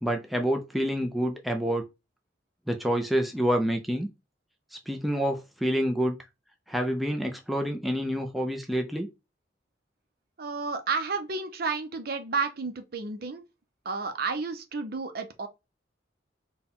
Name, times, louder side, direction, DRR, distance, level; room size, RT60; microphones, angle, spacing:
voice 1, 0.0-1.8 2.7-4.1 4.7-6.2 6.7-9.1, equal, ahead, 0.4 m, -27 dB
voice 2, 10.4-13.4 13.8-15.5, right 4 dB, 55° right, 0.6 m, -31 dB
4.2 x 2.3 x 3.6 m
head